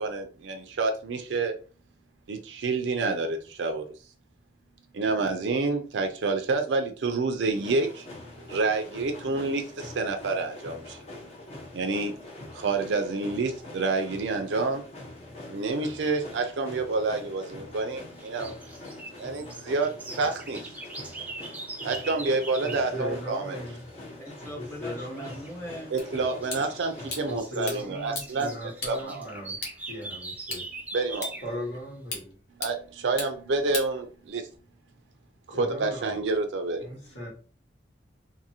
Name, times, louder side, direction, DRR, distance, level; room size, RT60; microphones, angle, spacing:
voice 1, 0.0-1.5 2.3-3.9 4.9-8.1 8.5-11.0 11.7-12.1 12.5-14.8 15.5-18.5 19.2-20.7 21.8-23.6 25.9-28.5 28.9-29.3 30.9-31.3 32.6-34.5 35.6-36.9, right 3 dB, 85° right, 0.4 m, -28 dB
sound 1, 7.5-27.4, left 2 dB, 35° left, 0.7 m, -44 dB
sound 2, 18.2-22.9 25.1-25.5 26.0-31.5, right 2 dB, 10° right, 0.3 m, -41 dB
voice 2, 22.6-23.9 24.5-25.3 27.2-30.7 31.4-32.4 35.5-36.2 36.8-37.3, equal, 85° left, 1.5 m, -38 dB
voice 3, 24.2-25.9, equal, 15° left, 1.0 m, -40 dB
sound 3, 26.0-34.6, left 3 dB, 60° left, 0.9 m, -41 dB
2.6 x 2.6 x 2.8 m
head